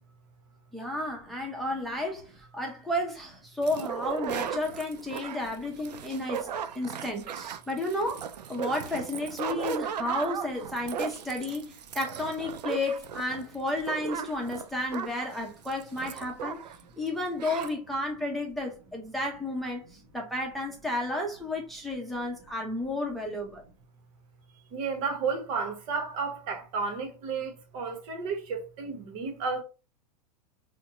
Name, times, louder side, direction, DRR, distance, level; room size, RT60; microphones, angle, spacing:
voice 1, 0.7-2.3 2.5-16.6 17.0-19.8 20.1-23.6, left 1 dB, ahead, 0.8 m, -32 dB
sound 1, 3.6-16.8 17.1-17.2 17.4-17.7, right 8 dB, 75° right, 0.4 m, -36 dB
voice 2, 24.7-29.6, right 5 dB, 50° right, 1.1 m, -32 dB
4.3 x 2.2 x 2.6 m
hypercardioid pair, 95°, 21 cm